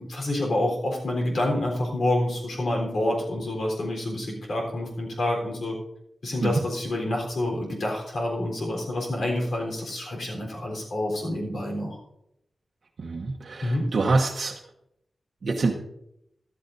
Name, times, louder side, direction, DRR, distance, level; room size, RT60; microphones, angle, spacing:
voice 1, 0.0-5.8 6.2-12.0 13.6-13.9, left 1 dB, 75° left, -1 dB, 3.8 m, -28 dB
voice 2, 13.0-14.6 15.4-15.8, right 3 dB, 65° right, 0 dB, 1.0 m, -26 dB
14.5 x 12.0 x 2.7 m, 0.80 s
wide cardioid pair, 85°, 0 cm